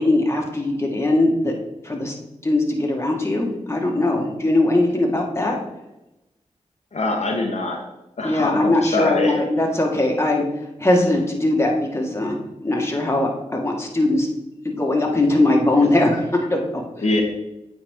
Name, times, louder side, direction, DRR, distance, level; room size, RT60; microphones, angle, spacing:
voice 1, 0.0-1.5 1.8-2.1 2.4-5.6 8.2-10.4 10.8-12.3 12.6-14.3 14.6-16.8, left 2 dB, 20° left, 0 dB, 1.7 m, -20 dB
voice 2, 6.9-7.8 8.2-9.3 17.0-17.2, left 2 dB, 60° left, 0 dB, 1.1 m, -23 dB
8.7 x 4.2 x 3.7 m, 0.95 s
cardioid pair, 50°, 13 cm